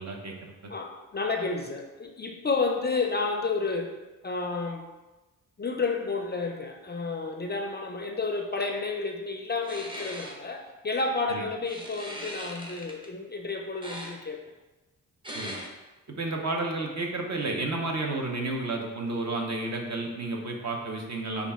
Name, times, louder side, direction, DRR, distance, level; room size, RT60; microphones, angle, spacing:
voice 1, 0.0-0.5 11.3-11.4 15.3-15.6 16.1-21.5, right 2 dB, 50° right, 1 dB, 0.8 m, -31 dB
voice 2, 0.7-4.0 4.2-4.9 5.6-14.4, left 3 dB, 30° left, 3 dB, 0.4 m, -31 dB
sound 1, 9.6-10.3 11.7-13.1 13.8-14.1 15.2-15.7, equal, 15° right, 0.8 m, -39 dB
5.3 x 2.4 x 3.5 m, 1.1 s
cardioid pair, 75°, 35 cm